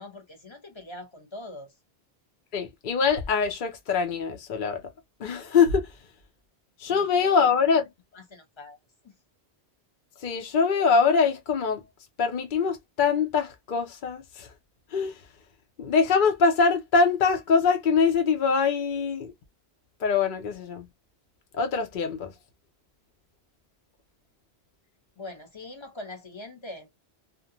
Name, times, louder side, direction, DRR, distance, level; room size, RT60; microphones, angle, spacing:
voice 1, 0.0-1.7 6.9-7.1 8.1-8.8 9.0-9.1 25.2-26.9, left 2 dB, 25° left, 0.9 m, -42 dB
voice 2, 2.5-4.8 5.2-5.9 6.8-7.8 10.2-11.8 12.2-14.5 14.9-15.1 15.8-19.3 20.0-20.8 21.5-22.3, left 5 dB, 55° left, 0.7 m, -23 dB
2.4 x 2.1 x 2.7 m
omnidirectional pair, 1.1 m